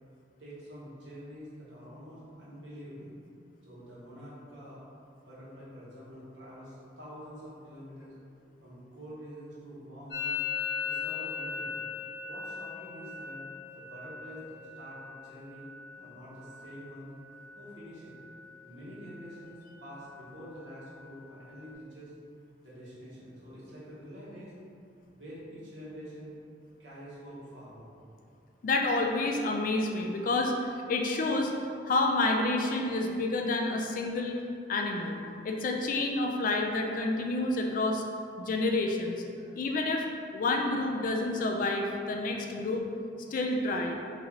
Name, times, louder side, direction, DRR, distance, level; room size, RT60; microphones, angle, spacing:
voice 1, 0.4-3.1 3.6-4.8 5.2-8.1 8.6-10.4 10.8-11.8 12.2-13.4 13.7-17.1 17.5-18.2 18.6-22.1 22.6-24.5 25.1-26.3 26.8-27.9 39.3-39.5, equal, 70° right, -9 dB, 1.2 m, -47 dB
Musical instrument, 10.1-17.8 18.0-18.6 18.8-19.4 19.7-21.7, left 6 dB, 65° left, 1.1 m, -40 dB
voice 2, 28.6-31.5 31.9-34.4 34.7-35.2 35.4-38.0 38.4-39.2 39.6-40.1 40.3-42.9 43.3-43.9, left 2 dB, 45° left, 1 dB, 0.3 m, -29 dB
3.1 x 2.6 x 3.8 m, 2.5 s
head